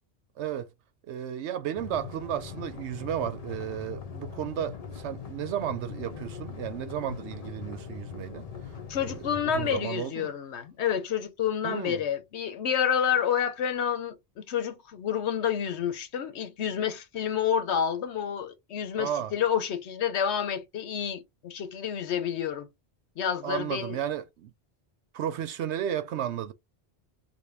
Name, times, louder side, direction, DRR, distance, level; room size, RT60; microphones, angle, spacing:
voice 1, 0.4-0.7 1.1-8.7 9.0-10.4 11.6-12.0 19.0-19.3 23.4-24.5 25.1-26.5, right 10 dB, 90° right, 0.9 m, -33 dB
sound 1, 1.7-9.8, left 6 dB, 45° left, 0.5 m, -41 dB
voice 2, 8.9-22.7 23.2-24.0, left 8 dB, 80° left, 1.0 m, -29 dB
3.5 x 2.2 x 3.3 m
omnidirectional pair, 1.1 m